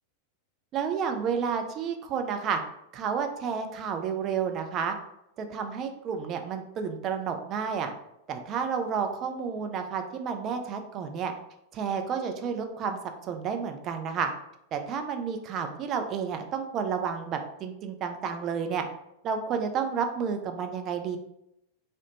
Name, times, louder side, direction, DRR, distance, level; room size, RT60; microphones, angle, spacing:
voice 1, 0.7-2.6 2.9-4.9 5.4-7.9 8.3-11.3 11.7-13.0 13.3-14.3 14.7-18.8 19.2-21.2, right 6 dB, 35° right, 5 dB, 0.3 m, -31 dB
2.8 x 2.0 x 2.7 m, 0.82 s
figure-of-eight pair, 90°, 0 cm